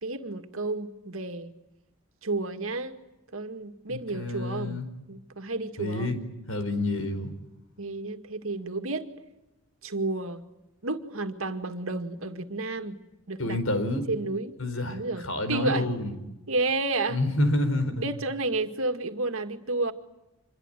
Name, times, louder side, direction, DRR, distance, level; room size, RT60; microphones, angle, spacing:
voice 1, 0.0-1.5 2.2-3.0 3.3-6.1 7.8-9.1 9.8-10.4 10.8-13.0 13.3-13.6 14.1-14.6 14.9-15.2 15.5-15.9 16.5-17.2 18.0-19.9, right 2 dB, 75° right, 8 dB, 2.2 m, -31 dB
voice 2, 3.9-4.9 5.8-6.2 6.5-7.3 13.4-14.0 14.6-16.2 17.1-18.1, left 1 dB, 75° left, 9 dB, 4.7 m, -28 dB
26.5 x 22.0 x 9.2 m, 0.99 s
head